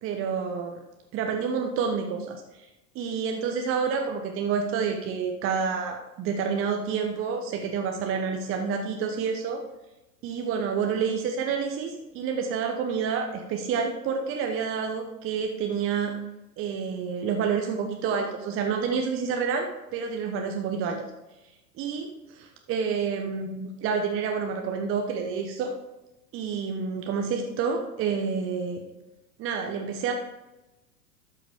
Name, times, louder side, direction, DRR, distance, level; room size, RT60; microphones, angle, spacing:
voice 1, 0.0-0.8 1.1-2.4 2.9-9.6 10.2-16.1 16.6-21.1 21.8-25.7 26.3-28.8 29.4-30.1, right 6 dB, 25° right, 4 dB, 0.9 m, -28 dB
12.5 x 5.7 x 3.6 m, 1.0 s
figure-of-eight pair, 95°, 49 cm